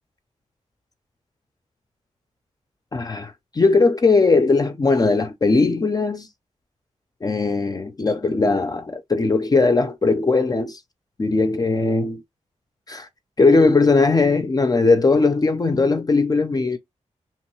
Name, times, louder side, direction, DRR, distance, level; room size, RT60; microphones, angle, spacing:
voice 1, 2.9-6.3 7.2-10.8 11.2-12.2 12.9-13.1 13.4-16.8, left 3 dB, 30° left, 0.4 m, -19 dB
2.9 x 2.2 x 3.0 m
cardioid pair, 60°, 13 cm